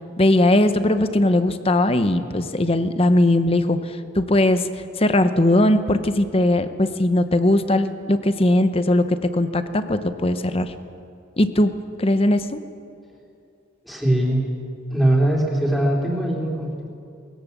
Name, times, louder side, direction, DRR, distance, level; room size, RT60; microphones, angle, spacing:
voice 1, 0.2-3.8 4.1-4.7 5.0-10.7 11.4-11.7 12.0-12.6, left 1 dB, 30° left, 10 dB, 0.9 m, -19 dB
voice 2, 13.8-14.4 14.9-16.9, right 1 dB, ahead, -3 dB, 3.7 m, -21 dB
20.5 x 17.0 x 7.4 m, 2.5 s
head